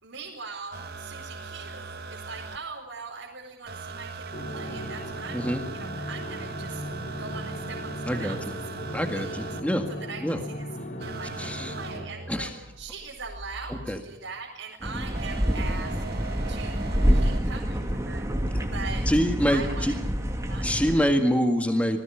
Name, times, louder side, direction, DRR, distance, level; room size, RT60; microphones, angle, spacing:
voice 1, 0.0-6.8 7.2-8.6 9.1-9.4 9.9-10.6 11.0-16.0 16.5-16.8 17.1-18.3 18.7-19.1 19.5-19.9 20.4-21.1, right 4 dB, 65° right, -3 dB, 4.7 m, -41 dB
sound 1, 0.7-2.6 3.7-9.6 11.0-14.0 15.1-17.4 18.6-18.7, right 4 dB, 50° right, 1.9 m, -40 dB
sound 2, 4.3-12.1, equal, 50° left, 2.7 m, -37 dB
voice 2, 8.1-8.4 8.9-9.9 10.2-10.4 11.4-11.7 12.3-12.5 13.7-14.0 19.1-20.0 20.6-22.0, equal, 5° left, 5 dB, 2.0 m, -25 dB
sound 3, 14.8-21.0, equal, 15° right, 2.6 m, -27 dB
28.0 x 20.0 x 5.9 m, 0.96 s
head